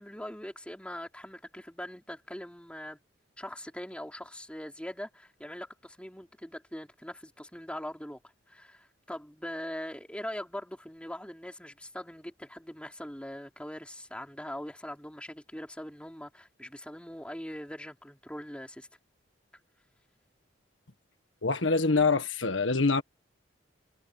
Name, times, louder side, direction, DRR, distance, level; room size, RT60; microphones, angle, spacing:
voice 1, 0.0-3.0 3.4-8.2 8.5-18.9, left 1 dB, 5° left, 3.6 m, -41 dB
voice 2, 21.4-23.0, left 3 dB, 80° left, 1.6 m, -25 dB
head